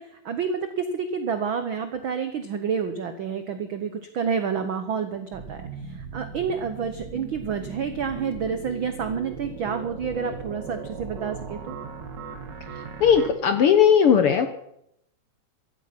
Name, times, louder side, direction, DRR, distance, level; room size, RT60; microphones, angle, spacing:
voice 1, 0.0-11.8, right 6 dB, 75° right, 9 dB, 1.1 m, -29 dB
sound 1, 5.3-13.3, right 5 dB, 45° right, 1.7 m, -38 dB
voice 2, 13.0-14.5, left 7 dB, 65° left, 9 dB, 1.5 m, -17 dB
15.5 x 13.0 x 5.9 m, 0.77 s
omnidirectional pair, 3.6 m